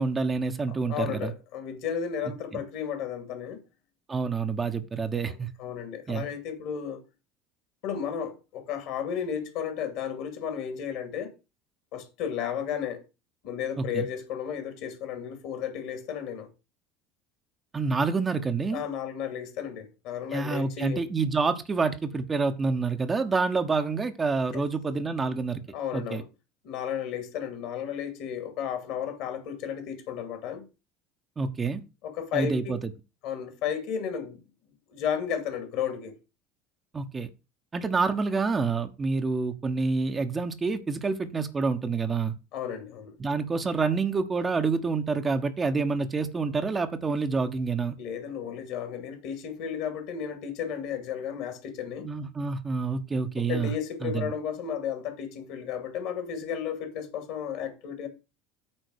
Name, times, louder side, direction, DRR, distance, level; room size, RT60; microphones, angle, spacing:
voice 1, 0.0-1.3 2.5-2.6 4.1-5.5 6.1-6.3 13.8-14.1 17.7-18.8 20.3-25.6 25.9-26.2 31.4-31.8 32.3-32.8 36.9-37.3 37.7-42.3 43.2-48.0 52.0-53.7 54.0-54.3, right 4 dB, 25° right, 1.1 m, -27 dB
voice 2, 0.7-3.6 5.2-7.0 7.8-11.3 11.9-13.0 13.4-16.5 18.7-21.0 24.5-24.6 25.7-26.2 26.6-30.6 32.0-32.8 33.2-34.4 34.9-36.1 42.5-43.2 48.0-52.1 53.4-58.1, left 8 dB, 55° left, 2.6 m, -33 dB
8.9 x 4.5 x 6.4 m
figure-of-eight pair, 65°, 0 cm